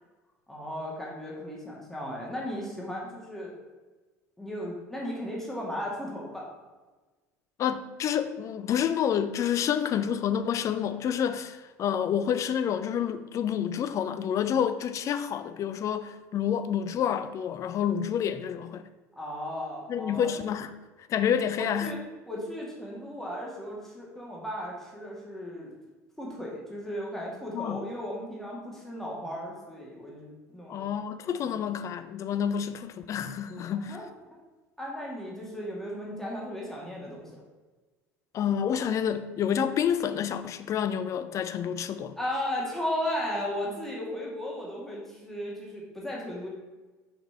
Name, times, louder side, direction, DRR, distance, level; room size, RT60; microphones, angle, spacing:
voice 1, 0.5-3.6 4.4-6.5 19.2-20.4 21.6-22.0 22.3-25.7 26.2-30.9 33.9-34.4 34.8-37.3 42.2-46.5, left 1 dB, 5° left, 2.0 m, -35 dB
voice 2, 7.6-18.8 19.9-20.7 21.1-22.0 27.5-27.8 30.7-34.0 38.3-42.2, left 8 dB, 35° left, 0.5 m, -28 dB
6.0 x 5.0 x 4.6 m
figure-of-eight pair, 65°, 9 cm